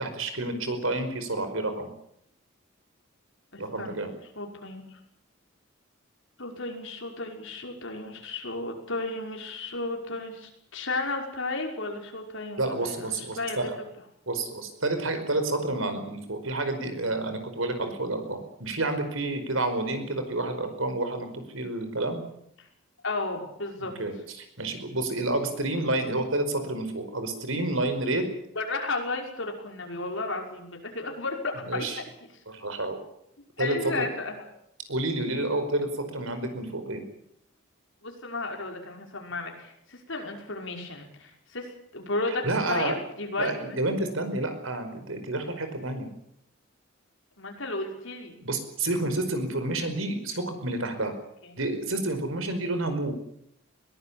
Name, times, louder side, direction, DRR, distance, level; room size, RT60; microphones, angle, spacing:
voice 1, 0.0-1.9 3.6-4.1 12.6-13.8 14.3-22.2 24.0-28.2 31.6-32.0 32.5-33.0 33.6-34.1 34.9-37.0 42.4-43.0 43.4-46.1 48.4-51.1 51.6-53.1, right 2 dB, 75° right, 8 dB, 5.0 m, -29 dB
voice 2, 3.5-4.0 4.3-5.0 6.4-13.7 22.6-22.7 23.0-24.0 28.5-31.9 33.6-34.4 38.0-43.8 47.4-48.3 51.4-51.5, left 2 dB, 65° left, 2 dB, 5.8 m, -34 dB
22.0 x 18.5 x 8.8 m, 0.73 s
head